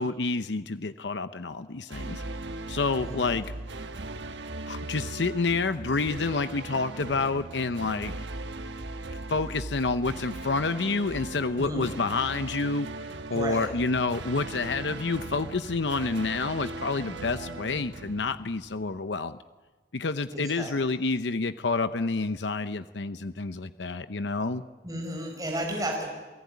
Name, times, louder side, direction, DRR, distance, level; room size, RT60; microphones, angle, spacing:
voice 1, 0.0-2.2 2.7-3.5 4.7-8.1 9.3-12.9 13.3-19.4 19.9-24.6, left 3 dB, 85° left, 11 dB, 0.8 m, -28 dB
sound 1, 1.9-18.9, right 2 dB, 90° right, 1.3 m, -39 dB
voice 2, 3.0-3.3 11.6-11.9 13.3-13.7 20.3-20.7 24.8-26.1, right 1 dB, 20° right, 0 dB, 5.1 m, -33 dB
29.5 x 17.5 x 9.5 m, 1.3 s
head